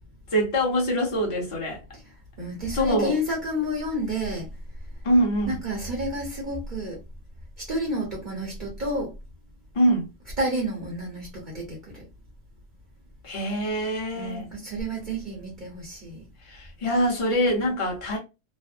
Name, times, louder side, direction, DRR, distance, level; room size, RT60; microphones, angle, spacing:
voice 1, 0.3-1.8 2.7-3.2 5.0-5.6 9.7-10.1 13.2-14.5 16.5-18.2, equal, 25° left, 0.8 m, -24 dB
voice 2, 2.4-4.5 5.5-7.0 7.6-9.1 10.4-11.9 14.1-16.2, equal, 35° right, 0.8 m, -30 dB
3.2 x 2.0 x 2.5 m
omnidirectional pair, 1.9 m